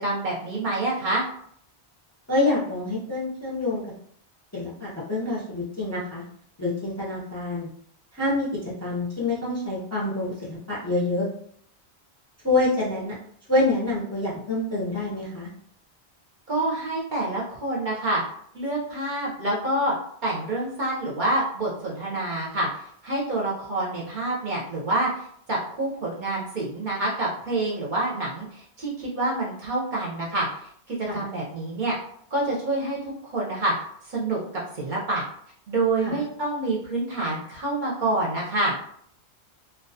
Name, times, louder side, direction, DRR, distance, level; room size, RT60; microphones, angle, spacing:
voice 1, 0.0-1.3 16.5-18.2 18.5-19.9 20.2-32.0 32.3-33.7 34.0-34.4 34.7-35.3 35.7-38.7, right 2 dB, 55° right, -3 dB, 0.6 m, -27 dB
voice 2, 2.3-3.8 4.5-6.2 6.6-7.7 8.1-8.5 8.8-11.3 12.4-13.2 13.5-15.5 31.1-31.3 36.0-36.2, left 2 dB, 20° left, -6 dB, 0.4 m, -26 dB
2.3 x 2.2 x 2.6 m, 0.64 s
omnidirectional pair, 1.1 m